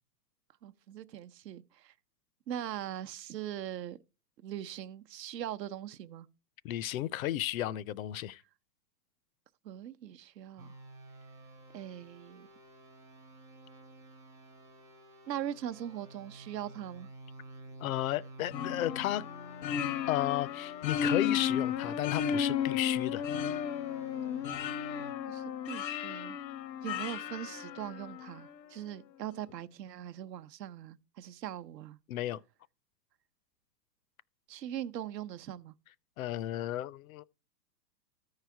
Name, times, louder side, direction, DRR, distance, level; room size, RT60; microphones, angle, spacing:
voice 1, 0.6-1.9 2.5-4.0 4.4-6.3 9.6-10.8 11.7-12.5 15.3-17.1 25.3-26.4 26.8-32.0 34.5-35.7, right 11 dB, 75° right, 0.8 m, -41 dB
voice 2, 6.6-8.4 17.8-19.2 20.1-23.3 32.1-32.4 36.2-37.2, left 13 dB, 55° left, 0.5 m, -33 dB
sound 1, 10.6-25.1, right 2 dB, 5° right, 0.4 m, -52 dB
sound 2, 18.5-28.3, left 8 dB, 80° left, 0.8 m, -34 dB
13.5 x 4.8 x 4.6 m
hypercardioid pair, 120°, 50 cm